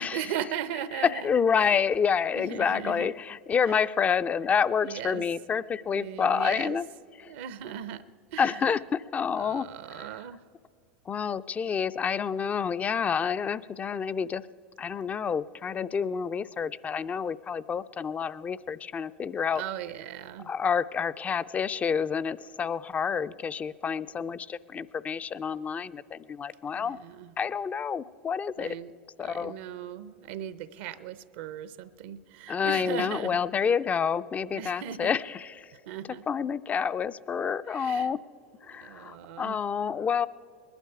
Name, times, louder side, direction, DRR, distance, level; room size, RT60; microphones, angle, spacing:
voice 1, 0.0-1.3 1.6-1.8 2.3-3.1 3.7-3.8 4.8-5.2 5.9-6.8 7.2-8.0 8.3-8.7 9.4-10.4 19.5-20.5 26.7-27.3 28.6-28.9 29.2-33.4 34.5-35.2 35.9-36.3 37.7-38.1 38.6-39.6, right 9 dB, 65° right, 15 dB, 0.7 m, -38 dB
voice 2, 0.9-6.9 7.2-7.3 8.4-9.7 10.0-10.1 11.1-14.5 14.8-19.6 20.4-27.0 27.4-28.8 29.2-29.5 32.5-35.7 36.3-38.2 38.6-40.3, left 6 dB, 25° left, 16 dB, 0.4 m, -28 dB
20.5 x 11.5 x 4.8 m, 2.3 s
hypercardioid pair, 95°, 6 cm